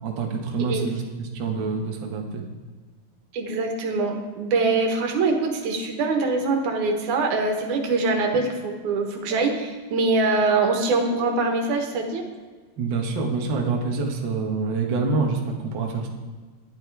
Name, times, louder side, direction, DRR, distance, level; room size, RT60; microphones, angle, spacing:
voice 1, 0.0-2.4 12.8-16.1, right 4 dB, 50° right, 1 dB, 1.7 m, -26 dB
voice 2, 3.3-12.2, right 3 dB, 85° right, 3 dB, 2.8 m, -23 dB
10.5 x 10.0 x 4.6 m, 1.4 s
omnidirectional pair, 3.4 m